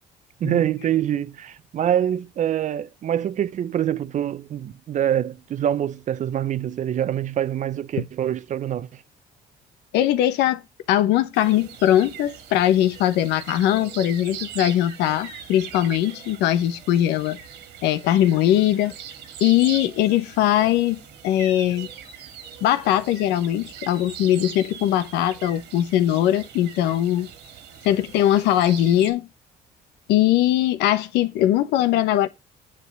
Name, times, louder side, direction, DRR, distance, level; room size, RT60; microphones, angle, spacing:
voice 1, 0.4-9.0, right 10 dB, 45° right, 0.7 m, -25 dB
voice 2, 9.9-10.6 10.9-17.4 17.8-18.9 19.4-21.9 22.6-27.3 27.8-29.3 30.1-32.3, left 12 dB, 90° left, 1.0 m, -20 dB
sound 1, 11.3-29.1, right 8 dB, 85° right, 2.5 m, -41 dB
9.7 x 3.6 x 6.0 m
cardioid pair, 110°, 17 cm